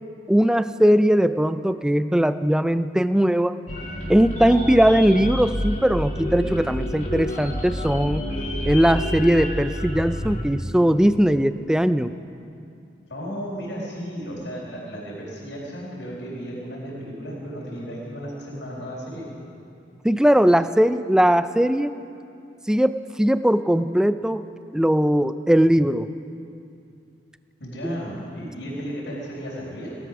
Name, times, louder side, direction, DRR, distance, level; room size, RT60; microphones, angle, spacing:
voice 1, 0.3-3.6 4.1-8.2 8.7-12.1 20.0-21.9 22.7-24.4 24.7-26.1 27.8-28.0, equal, 5° right, 12 dB, 0.3 m, -19 dB
sound 1, 3.7-10.4, left 1 dB, 45° left, 2.0 m, -29 dB
voice 2, 13.1-19.3 27.6-30.0, equal, 80° left, -5 dB, 4.3 m, -34 dB
18.5 x 12.0 x 6.0 m, 2.5 s
head